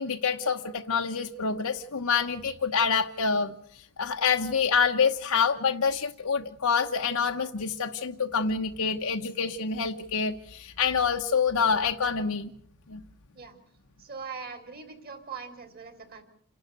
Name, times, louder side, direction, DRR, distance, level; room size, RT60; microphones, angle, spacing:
voice 1, 0.0-12.5 12.9-13.0, left 5 dB, 85° left, 3 dB, 1.1 m, -27 dB
voice 2, 14.0-16.2, right 5 dB, 45° right, 8 dB, 3.9 m, -41 dB
28.5 x 12.0 x 9.4 m, 0.64 s
head